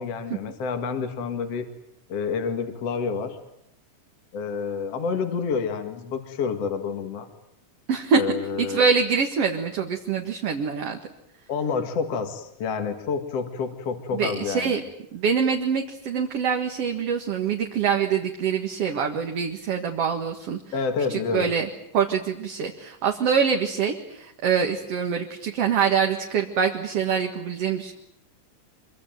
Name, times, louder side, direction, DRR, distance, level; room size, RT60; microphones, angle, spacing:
voice 1, 0.0-1.7 2.1-3.4 4.3-7.3 8.1-8.8 11.5-14.8 20.7-21.5, left 5 dB, 55° left, 6 dB, 2.9 m, -28 dB
voice 2, 7.9-8.2 8.6-11.0 14.1-14.8 15.1-20.6 21.1-27.9, right 6 dB, 55° right, 3 dB, 2.6 m, -25 dB
25.5 x 24.0 x 9.2 m, 0.76 s
omnidirectional pair, 3.7 m